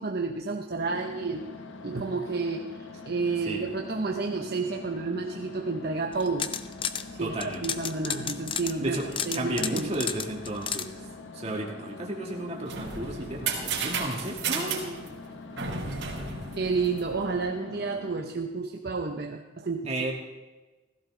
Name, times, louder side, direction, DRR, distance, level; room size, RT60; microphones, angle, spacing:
voice 1, 0.0-1.5 1.8-2.8 3.0-6.5 7.2-7.3 7.6-9.0 9.3-9.9 16.6-19.9, right 4 dB, 55° right, 3 dB, 0.8 m, -30 dB
sound 1, 0.8-18.2, left 2 dB, 90° left, 1.3 m, -44 dB
sound 2, 6.1-7.0 7.4-10.9, left 7 dB, 30° left, 0.6 m, -32 dB
voice 2, 7.2-7.8 8.8-11.1 11.3-15.0 19.9-20.1, right 1 dB, 35° right, -1 dB, 2.5 m, -33 dB
sound 3, 12.4-17.4, right 5 dB, 85° right, 3.7 m, -33 dB
16.5 x 15.0 x 3.8 m, 1.2 s
head